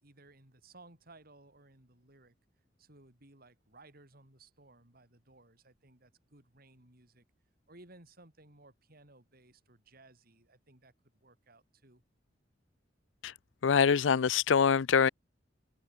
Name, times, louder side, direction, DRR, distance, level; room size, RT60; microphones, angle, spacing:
voice 1, 0.0-2.3 2.8-7.2 7.7-12.0, right 2 dB, 55° right, 5.0 m, -59 dB
voice 2, 13.6-15.1, left 6 dB, 90° left, 0.5 m, -24 dB
open air
head